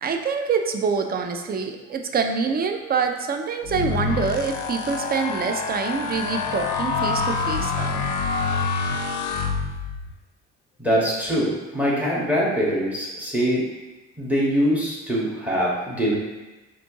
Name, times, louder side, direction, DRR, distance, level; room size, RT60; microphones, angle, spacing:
voice 1, 0.0-8.0, right 5 dB, 25° right, 5 dB, 0.4 m, -25 dB
sound 1, 3.6-10.1, left 5 dB, 55° left, 0.5 m, -26 dB
voice 2, 10.8-13.6 14.2-16.1, equal, 5° right, -5 dB, 1.5 m, -23 dB
4.2 x 2.7 x 2.9 m, 1.1 s
hypercardioid pair, 55°, 35 cm